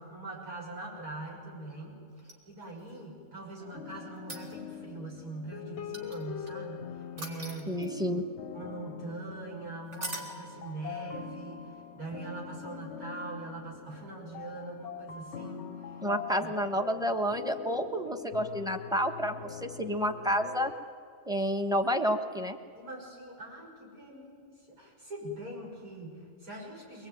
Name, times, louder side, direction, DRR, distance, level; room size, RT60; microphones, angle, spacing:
voice 1, 0.0-6.9 7.2-7.8 8.5-15.6 16.4-16.5 22.7-27.1, right 2 dB, 75° right, -2 dB, 6.7 m, -42 dB
sound 1, 2.2-2.9 4.2-4.9 5.9-6.5 7.2-8.1 9.9-10.4 12.6-12.7, right 2 dB, 50° right, 3.0 m, -41 dB
sound 2, 3.6-20.7, left 8 dB, 55° left, 0.9 m, -43 dB
voice 2, 7.7-8.2 16.0-20.7 21.3-22.6, equal, 5° right, 5 dB, 1.2 m, -30 dB
23.5 x 20.5 x 9.3 m, 2.3 s
omnidirectional pair, 1.5 m